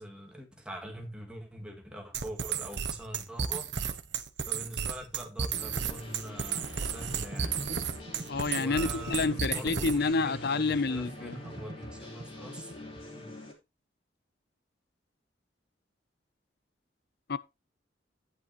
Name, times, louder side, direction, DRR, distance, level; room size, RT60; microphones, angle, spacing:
voice 1, 0.0-3.7 4.5-7.6 8.5-12.8 13.1-13.3, right 1 dB, 5° right, 2.0 m, -44 dB
sound 1, 2.1-10.1, right 6 dB, 65° right, 1.1 m, -33 dB
sound 2, 5.5-13.5, left 2 dB, 30° left, 3.2 m, -46 dB
sound 3, 6.5-13.0, right 1 dB, 40° right, 1.7 m, -45 dB
voice 2, 8.3-11.4 17.3-17.4, left 4 dB, 60° left, 0.6 m, -29 dB
11.0 x 9.4 x 3.0 m
head